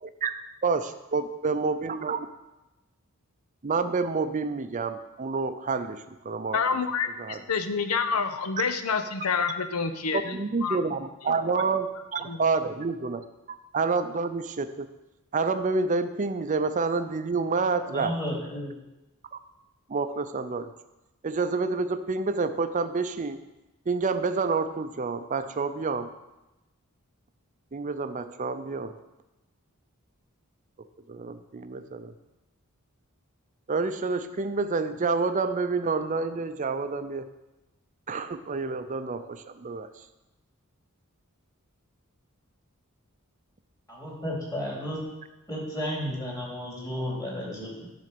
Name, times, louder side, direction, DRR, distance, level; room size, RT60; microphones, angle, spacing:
voice 1, 0.0-0.3 0.6-0.9 1.1-2.3 3.6-6.6 7.2-7.4 10.1-13.2 13.7-14.9 15.3-18.1 19.9-20.7 21.2-23.4 23.9-26.1 27.7-29.0 31.1-32.1 33.7-37.3 38.1-39.9, right 4 dB, 35° right, 10 dB, 0.5 m, -28 dB
voice 2, 6.5-10.2 10.6-10.8 11.3-11.4 12.3-12.4, left 5 dB, 80° left, 9 dB, 0.7 m, -28 dB
voice 3, 17.9-18.7 43.9-45.0 45.5-47.9, equal, 15° left, -4 dB, 2.5 m, -33 dB
10.5 x 4.0 x 6.7 m, 1.0 s
head